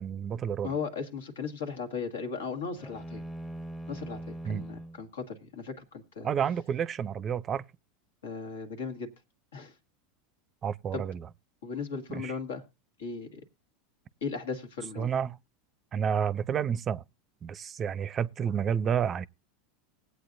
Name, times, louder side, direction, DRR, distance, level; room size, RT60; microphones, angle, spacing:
voice 1, 0.0-0.7 4.4-4.7 6.2-7.6 10.6-11.2 12.1-12.3 15.0-15.4 15.9-17.0 17.4-19.3, right 8 dB, 35° right, 0.5 m, -30 dB
voice 2, 0.6-3.2 3.9-6.3 8.2-9.1 9.5-9.7 10.9-11.0 11.6-12.6 13.0-13.4 14.2-15.1, left 5 dB, 80° left, 1.7 m, -37 dB
sound 1, 2.8-5.0, right 1 dB, 5° left, 0.7 m, -41 dB
20.0 x 8.2 x 2.6 m
hypercardioid pair, 95°, 0 cm